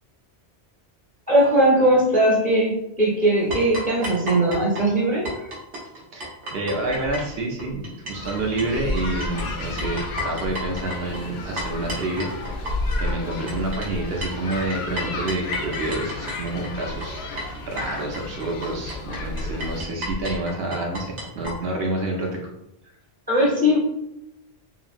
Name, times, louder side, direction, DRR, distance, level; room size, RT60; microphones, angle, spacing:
voice 1, 1.3-5.5 23.3-23.8, right 1 dB, 10° left, -5 dB, 0.7 m, -19 dB
sound 1, 3.5-8.3 8.6-21.5, left 1 dB, 85° right, 1.2 m, -31 dB
voice 2, 6.1-12.7 13.0-22.4, right 2 dB, 65° right, 0 dB, 0.7 m, -28 dB
sound 2, 8.1-19.8, left 3 dB, 70° left, 0.8 m, -35 dB
2.8 x 2.6 x 2.4 m, 0.83 s
omnidirectional pair, 1.2 m